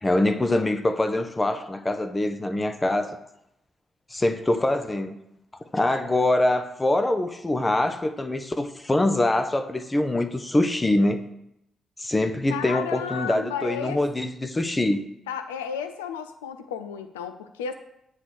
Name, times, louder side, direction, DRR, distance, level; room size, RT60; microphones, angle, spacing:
voice 1, 0.0-3.2 4.1-5.2 5.7-11.2 12.0-15.0, left 1 dB, 25° left, 9 dB, 0.6 m, -24 dB
voice 2, 12.5-14.0 15.3-17.7, left 7 dB, 85° left, 9 dB, 0.3 m, -33 dB
7.6 x 3.1 x 6.0 m, 0.82 s
hypercardioid pair, 40°, 0 cm